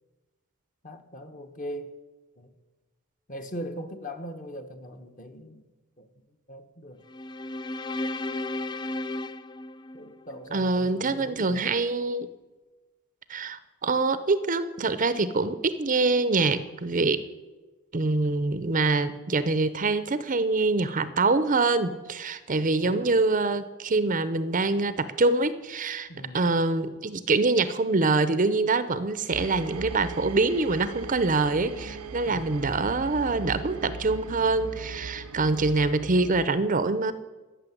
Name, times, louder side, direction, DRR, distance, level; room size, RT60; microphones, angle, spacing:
voice 1, 0.8-2.0 2.4-2.5 3.3-5.6 6.0-6.1 6.5-7.0 9.9-11.7 22.8-23.1 26.1-26.5 32.3-32.6, equal, 35° left, 6 dB, 1.2 m, -40 dB
sound 1, 7.1-10.5, left 2 dB, 20° left, 0.3 m, -34 dB
voice 2, 10.5-12.3 13.3-17.2 17.9-26.1 26.3-37.1, right 3 dB, 35° right, 13 dB, 0.7 m, -25 dB
sound 2, 29.3-36.5, right 3 dB, 85° right, 0.8 m, -39 dB
14.0 x 6.8 x 9.3 m, 1.2 s
head